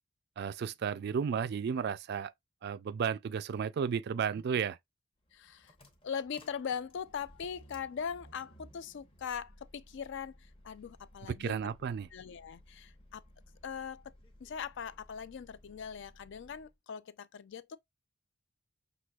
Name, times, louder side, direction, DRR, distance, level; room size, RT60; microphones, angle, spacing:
voice 1, 0.4-2.3 2.6-4.8 11.3-12.1, right 7 dB, 50° right, 0.3 m, -33 dB
sound 1, 5.2-16.8, equal, 25° left, 0.8 m, -59 dB
voice 2, 5.3-5.8 6.0-11.7 12.1-13.2 13.6-14.0 14.4-17.8, left 7 dB, 60° left, 0.4 m, -41 dB
6.0 x 2.7 x 2.3 m
head